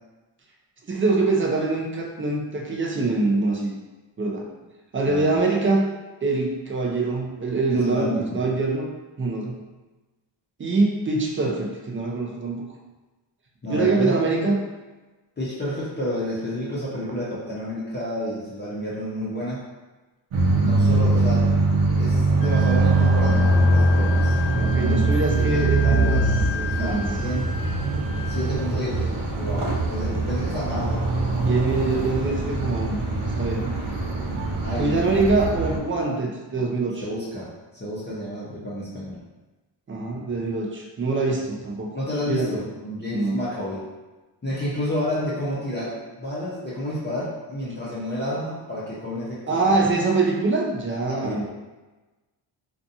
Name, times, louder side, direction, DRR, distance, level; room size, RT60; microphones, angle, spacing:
voice 1, 0.8-3.8 4.2-4.5 4.9-5.9 6.2-8.9 9.2-9.6 10.6-12.6 13.7-14.6 24.6-26.3 26.8-27.1 31.4-33.0 33.4-33.8 34.8-37.0 39.9-42.0 42.2-42.5 43.1-43.4 49.5-51.5, right 3 dB, 30° right, 0 dB, 0.4 m, -24 dB
voice 2, 5.0-5.4 7.7-8.4 13.6-14.3 15.4-19.6 20.6-21.5 22.0-27.5 28.3-31.0 34.6-35.0 37.0-39.2 41.9-43.8 44.4-49.9 51.0-51.5, left 1 dB, 20° left, -8 dB, 0.5 m, -30 dB
sound 1, 20.3-35.8, right 2 dB, 75° right, 0.7 m, -22 dB
sound 2, 21.8-26.5, left 1 dB, 5° right, 0.9 m, -38 dB
Wind instrument woodwind instrument, 22.4-28.6, left 5 dB, 70° left, 0.5 m, -35 dB
2.5 x 2.3 x 2.6 m, 1.2 s
wide cardioid pair, 105°, 49 cm